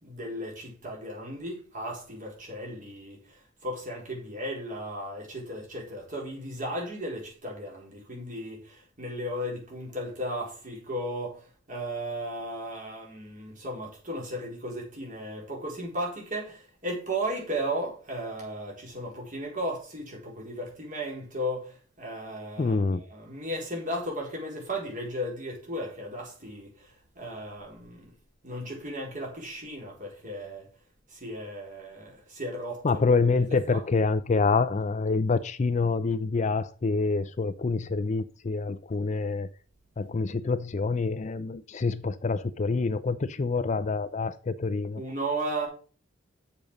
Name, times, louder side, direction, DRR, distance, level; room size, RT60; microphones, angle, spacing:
voice 1, 0.0-28.0 28.4-30.7 31.1-33.0 33.5-33.8 45.0-45.7, right 1 dB, 45° right, 4.3 m, -35 dB
voice 2, 22.6-23.0 32.8-39.5 40.0-45.0, left 4 dB, 35° left, 0.4 m, -26 dB
7.0 x 5.4 x 6.3 m
head